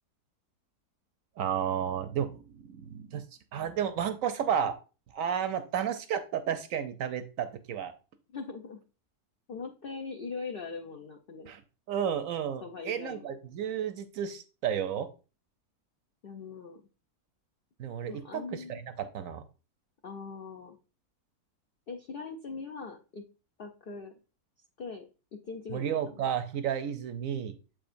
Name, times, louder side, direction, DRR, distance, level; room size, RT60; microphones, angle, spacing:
voice 1, 1.4-3.2 3.5-4.8 5.1-7.9 11.5-11.6 11.9-15.1 17.8-19.4 25.7-27.5, right 8 dB, 70° right, 9 dB, 0.9 m, -32 dB
voice 2, 8.3-8.8 9.5-11.5 12.6-13.3 16.2-16.8 18.1-18.8 20.0-20.8 21.9-23.2 23.6-24.1 24.8-26.3, left 4 dB, 70° left, 5 dB, 0.5 m, -41 dB
7.4 x 5.0 x 2.5 m, 0.33 s
omnidirectional pair, 1.7 m